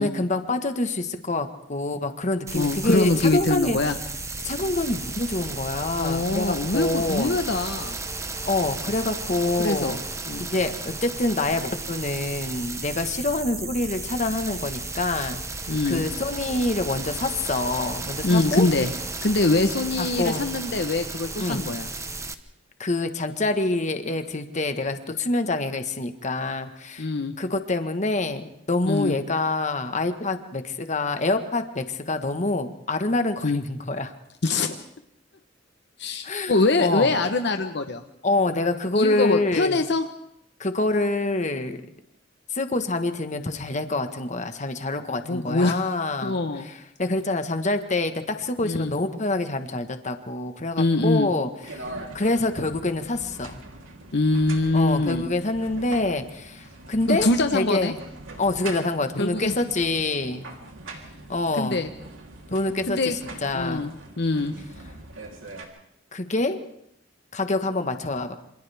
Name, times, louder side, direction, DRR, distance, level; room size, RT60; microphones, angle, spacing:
voice 1, 0.0-3.8 4.4-7.3 8.4-10.0 10.4-15.4 15.9-18.7 20.0-20.5 21.4-21.7 22.8-27.1 27.4-34.1 36.2-37.1 38.2-39.8 40.6-41.8 42.5-51.5 51.8-51.9 52.1-53.6 54.7-58.0 58.4-60.5 61.3-61.8 62.5-63.9 66.1-66.6 67.3-68.4, left 2 dB, 40° left, 8 dB, 1.4 m, -26 dB
voice 2, 2.5-4.0 6.0-8.0 9.4-10.0 10.3-10.5 15.7-16.0 18.2-18.9 19.2-21.9 27.0-27.3 28.9-29.2 33.4-33.6 34.4-34.8 36.0-38.0 39.0-40.1 45.3-45.8 46.2-46.7 48.6-48.9 50.8-51.3 54.1-55.3 57.1-57.9 59.2-59.5 61.6-61.9 62.9-63.2 63.5-63.9 64.2-64.5, left 2 dB, 60° left, 6 dB, 1.1 m, -23 dB
sound 1, 2.5-22.3, right 3 dB, 15° right, 1.0 m, -34 dB
sound 2, 51.6-65.6, right 2 dB, 90° right, 3.4 m, -42 dB
27.5 x 26.5 x 3.5 m, 0.77 s
head